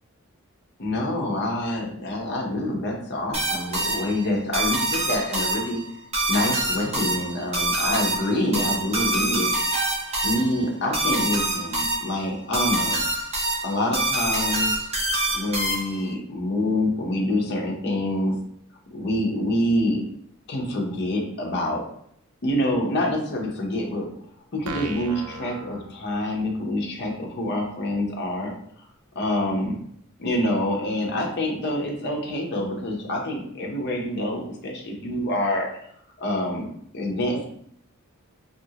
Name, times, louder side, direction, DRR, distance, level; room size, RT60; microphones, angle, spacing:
voice 1, 0.8-5.8 6.3-9.5 10.2-13.1 13.6-14.7 15.3-18.3 18.9-20.0 20.5-21.8 22.4-24.1 24.5-28.5 29.1-29.8 30.2-35.7 36.2-36.7 36.9-37.4, left 1 dB, 50° left, 0 dB, 0.7 m, -26 dB
sound 1, 3.3-16.1, right 1 dB, 30° right, 0.6 m, -26 dB
sound 2, 24.7-26.6, right 4 dB, 85° right, 0.3 m, -38 dB
2.8 x 2.5 x 2.8 m, 0.67 s
head